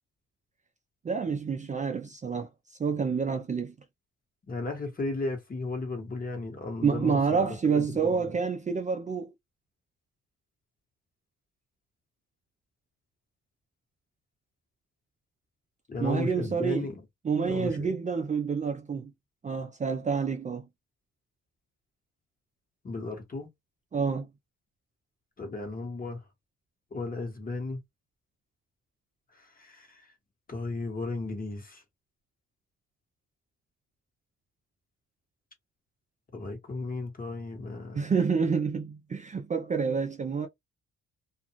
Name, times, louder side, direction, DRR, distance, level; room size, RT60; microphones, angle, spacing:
voice 1, 1.0-3.7 6.8-9.3 16.0-16.9 17.2-19.1 19.4-20.7 23.9-24.3 37.9-40.5, right 5 dB, 25° right, 0.4 m, -28 dB
voice 2, 4.5-8.3 15.9-17.0 17.4-17.9 22.8-23.5 25.4-26.2 26.9-27.8 29.4-30.1 30.5-31.8 36.3-38.0, left 3 dB, 30° left, 1.3 m, -35 dB
2.5 x 2.3 x 2.9 m
cardioid pair, 90°, 30 cm